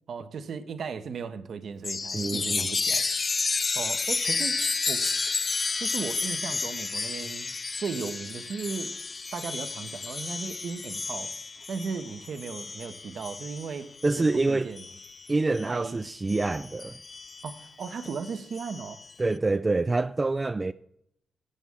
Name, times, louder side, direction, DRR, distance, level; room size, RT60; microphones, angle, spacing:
voice 1, 0.1-3.1 3.7-4.6 4.9-5.0 5.8-7.5 7.8-8.9 9.3-11.3 11.7-13.9 14.2-14.8 15.7-16.0 17.4-19.0, right 5 dB, 65° right, 1.1 m, -36 dB
Chime, 1.8-15.8 16.3-19.1, left 4 dB, 40° left, 0.3 m, -32 dB
voice 2, 2.1-2.7 14.0-14.7 15.3-17.0 19.2-20.7, right 3 dB, 30° right, 0.4 m, -26 dB
16.0 x 8.2 x 3.7 m
supercardioid pair, 50°, 0 cm